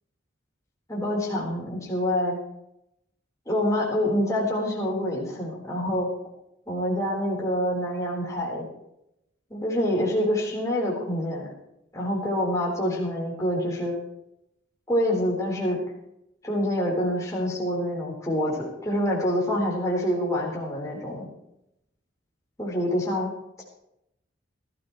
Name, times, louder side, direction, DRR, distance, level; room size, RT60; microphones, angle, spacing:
voice 1, 0.9-2.4 3.5-6.1 6.7-8.6 9.5-11.5 11.9-13.9 14.9-15.8 16.4-21.3 22.6-23.3, equal, 15° left, -4 dB, 4.0 m, -26 dB
21.0 x 13.5 x 3.2 m, 0.81 s
head